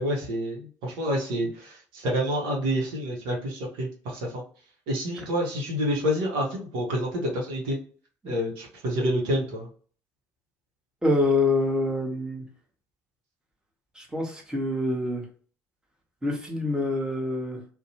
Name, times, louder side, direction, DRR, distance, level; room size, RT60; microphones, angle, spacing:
voice 1, 0.0-4.4 4.9-7.8 8.2-9.7, equal, 65° right, -1 dB, 0.8 m, -28 dB
voice 2, 11.0-12.4 13.9-15.2 16.2-17.6, left 2 dB, 10° right, 0 dB, 1.0 m, -26 dB
2.6 x 2.1 x 2.8 m, 0.43 s
figure-of-eight pair, 55°, 9 cm